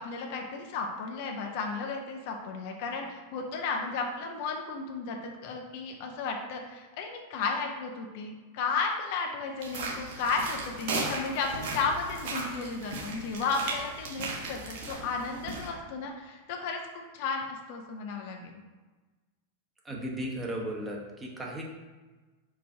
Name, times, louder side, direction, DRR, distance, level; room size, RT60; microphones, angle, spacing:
voice 1, 0.0-18.6, left 4 dB, 50° left, 2 dB, 0.6 m, -34 dB
sound 1, 9.6-15.7, right 3 dB, 50° right, 1.1 m, -36 dB
voice 2, 19.8-21.6, right 1 dB, 15° right, -1 dB, 0.9 m, -35 dB
4.7 x 2.5 x 4.4 m, 1.3 s
figure-of-eight pair, 90°, 0 cm